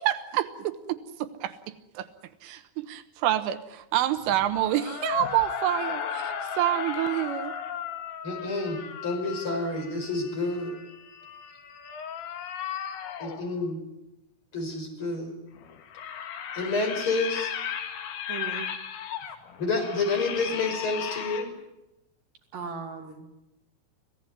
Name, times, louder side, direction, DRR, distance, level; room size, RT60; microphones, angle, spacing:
voice 1, 0.0-1.5 2.0-2.1 2.4-7.5, right 13 dB, 80° right, 10 dB, 3.5 m, -28 dB
sound 1, 4.2-13.5 15.6-21.4, left 8 dB, 80° left, 4.7 m, -36 dB
voice 2, 8.2-10.8 13.2-13.8 14.5-15.4 16.5-17.5 19.6-21.6, left 3 dB, 25° left, 4 dB, 5.7 m, -29 dB
voice 3, 18.3-18.7 22.5-23.3, right 6 dB, 50° right, 3 dB, 4.0 m, -37 dB
26.5 x 16.5 x 9.4 m, 0.95 s
omnidirectional pair, 5.8 m